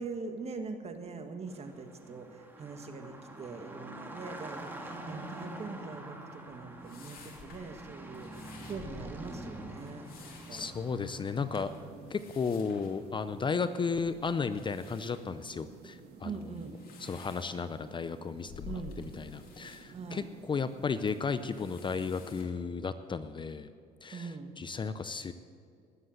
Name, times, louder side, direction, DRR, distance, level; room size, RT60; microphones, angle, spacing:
voice 1, 0.0-10.7 11.3-12.1 16.2-16.8 18.6-19.0 19.9-20.3 24.1-24.5, right 4 dB, 40° right, 6 dB, 1.7 m, -43 dB
sound 1, 1.5-11.9, right 1 dB, 10° right, 2.0 m, -46 dB
sound 2, 6.5-23.4, left 4 dB, 60° left, 2.9 m, -53 dB
sound 3, 10.4-22.5, right 6 dB, 80° right, 1.6 m, -53 dB
voice 2, 10.5-11.7 12.1-16.5 17.0-23.7 24.0-25.3, left 5 dB, 30° left, 12 dB, 0.6 m, -34 dB
19.5 x 7.9 x 7.8 m, 2.3 s
cardioid pair, 110°, 17 cm